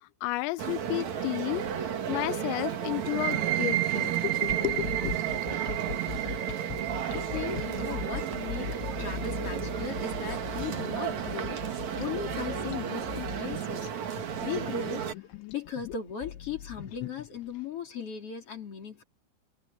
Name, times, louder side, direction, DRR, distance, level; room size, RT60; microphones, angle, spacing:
voice 1, 0.0-1.7 2.1-5.1, left 20 dB, 90° left, 2.5 m, -32 dB
sound 1, 0.6-15.1, right 8 dB, 55° right, 2.1 m, -34 dB
sound 2, 3.0-10.5, right 15 dB, 90° right, 4.2 m, -33 dB
sound 3, 4.5-17.6, left 9 dB, 70° left, 3.5 m, -40 dB
voice 2, 7.0-19.0, left 7 dB, 35° left, 2.9 m, -38 dB
omnidirectional pair, 6.0 m